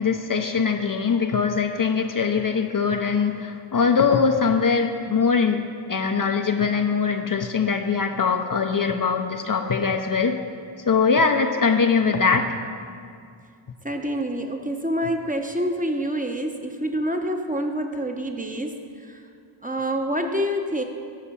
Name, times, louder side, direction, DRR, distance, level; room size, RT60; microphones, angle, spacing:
voice 1, 0.0-10.3 10.9-12.6, left 5 dB, 45° left, 5 dB, 0.6 m, -22 dB
voice 2, 13.8-18.7 19.1-19.2 19.6-20.8, equal, 15° right, 4 dB, 0.8 m, -27 dB
9.9 x 4.8 x 6.9 m, 2.3 s
cardioid pair, 55°, 49 cm